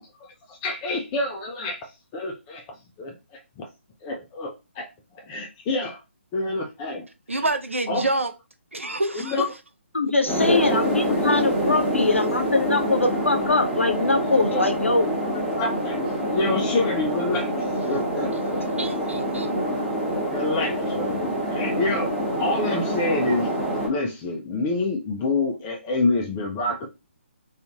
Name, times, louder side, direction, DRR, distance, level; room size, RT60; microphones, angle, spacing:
voice 1, 0.5-2.6 3.0-3.7 4.0-4.9 5.1-6.0 6.3-7.1 7.3-7.5 7.9-8.1 9.1-9.4 10.2-10.8 14.5-14.6 15.3-18.3 19.4-19.6 20.3-22.1 22.4-23.5 23.8-26.9, left 2 dB, 15° left, 0.3 m, -27 dB
voice 2, 7.3-8.3 8.7-9.4 18.8-19.5, right 2 dB, 80° right, 0.5 m, -27 dB
voice 3, 9.9-15.2, left 2 dB, 80° left, 0.6 m, -22 dB
sound 1, 10.3-23.9, equal, ahead, 0.9 m, -26 dB
2.4 x 2.3 x 2.8 m
figure-of-eight pair, 140°, 7 cm